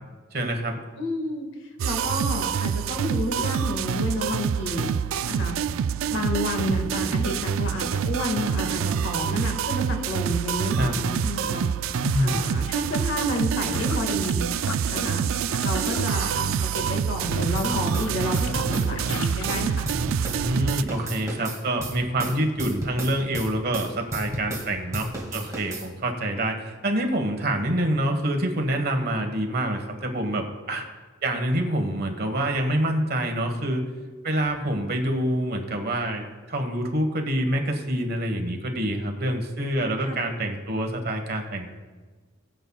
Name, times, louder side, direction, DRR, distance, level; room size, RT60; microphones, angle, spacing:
voice 1, 0.3-0.8 10.7-11.0 12.0-12.4 20.1-30.9 31.2-33.8 34.2-41.7, right 1 dB, 45° right, 4 dB, 1.3 m, -26 dB
voice 2, 1.0-1.5 1.8-4.9 5.2-5.6 6.1-11.7 11.9-14.5 14.9-15.3 15.6-19.9 40.0-40.2, left 1 dB, 60° left, 3 dB, 1.7 m, -30 dB
sound 1, 1.8-20.8, right 7 dB, 65° right, 0.3 m, -26 dB
sound 2, 12.8-14.3 14.6-19.5, left 7 dB, 80° left, 0.4 m, -38 dB
sound 3, 17.5-20.4 20.7-24.7 24.9-25.9, right 1 dB, 15° right, 2.1 m, -33 dB
20.0 x 7.2 x 2.3 m, 1.4 s
head